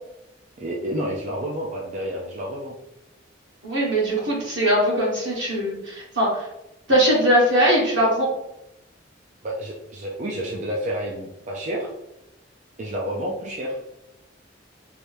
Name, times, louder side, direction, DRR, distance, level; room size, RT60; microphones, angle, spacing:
voice 1, 0.6-2.8 9.4-11.9 12.8-13.8, equal, 40° right, -3 dB, 0.5 m, -29 dB
voice 2, 3.6-6.5 6.9-8.3, equal, 75° right, -4 dB, 1.4 m, -20 dB
3.2 x 2.6 x 3.3 m, 0.88 s
head